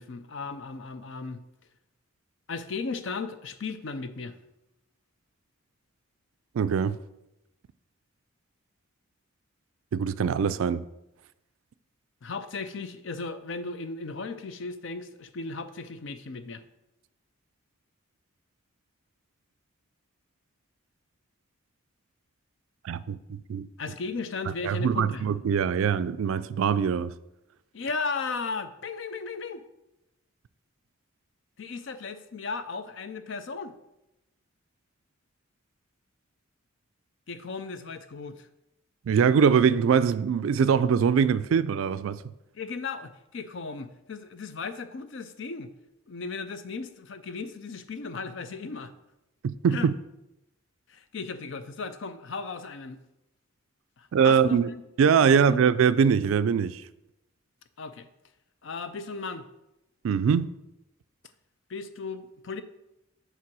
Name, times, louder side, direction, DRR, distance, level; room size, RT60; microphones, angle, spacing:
voice 1, 0.0-1.4 2.5-4.4 12.2-16.6 23.8-25.3 27.7-29.6 31.6-33.7 37.3-38.5 42.5-45.7 46.1-48.9 49.7-49.9 50.9-53.0 54.0-54.8 55.2-55.6 57.8-58.1 58.6-59.5 61.7-62.6, left 4 dB, 60° left, 0.5 m, -36 dB
voice 2, 6.5-7.0 9.9-10.8 22.8-23.7 24.6-27.1 39.1-42.2 49.4-49.9 54.1-54.7 55.0-56.8 60.0-60.5, right 7 dB, 70° right, 0.3 m, -23 dB
7.5 x 3.3 x 6.0 m
head